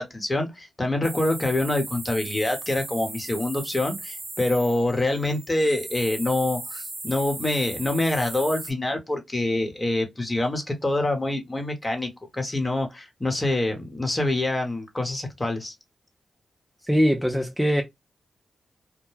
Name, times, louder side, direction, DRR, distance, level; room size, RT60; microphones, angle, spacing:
voice 1, 0.0-15.7, left 2 dB, 30° left, 1.1 m, -26 dB
sound 1, 1.0-8.7, right 2 dB, 40° right, 0.8 m, -37 dB
voice 2, 16.9-17.8, equal, 5° right, 0.6 m, -21 dB
2.2 x 2.2 x 3.1 m
supercardioid pair, 40°, 0 cm